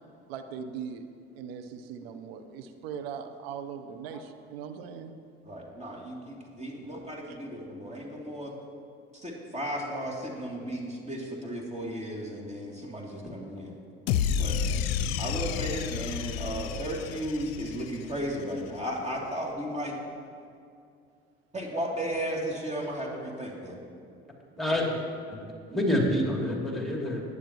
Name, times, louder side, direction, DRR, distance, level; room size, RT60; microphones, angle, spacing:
voice 1, 0.3-1.1 1.3-5.1 7.3-7.4, right 7 dB, 75° right, 8 dB, 0.9 m, -40 dB
voice 2, 5.4-8.5 9.1-13.7 14.4-14.6 15.2-19.9 21.5-23.8, equal, 20° right, -2 dB, 2.9 m, -35 dB
sound 1, 14.1-18.4, left 7 dB, 70° left, 0.6 m, -30 dB
voice 3, 24.6-25.0 25.3-27.2, left 1 dB, ahead, -2 dB, 2.9 m, -28 dB
20.5 x 9.7 x 3.0 m, 2.4 s
hypercardioid pair, 55°, 30 cm